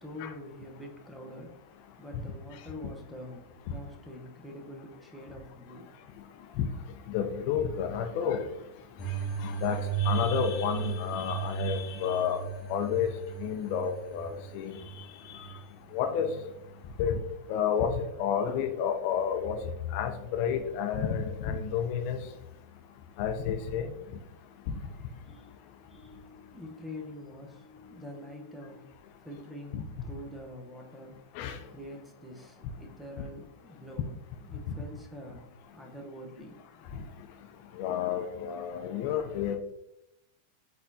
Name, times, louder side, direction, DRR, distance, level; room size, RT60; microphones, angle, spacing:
voice 1, 0.0-1.6 2.0-5.8 25.0-28.9 29.2-31.2 31.7-34.1 34.4-35.5 35.7-36.5, left 1 dB, 5° right, 2 dB, 0.9 m, -45 dB
voice 2, 7.1-8.4 9.4-12.4 12.7-13.1 13.4-14.7 15.9-16.3 17.0-17.1 17.5-19.6 19.9-22.2 23.2-23.9 29.7-29.8 31.4-31.6 37.8-39.6, left 8 dB, 55° left, 7 dB, 0.5 m, -30 dB
sound 1, 9.0-17.1, right 6 dB, 30° left, 1.1 m, -35 dB
4.5 x 4.1 x 2.7 m, 0.86 s
hypercardioid pair, 125°, 0 cm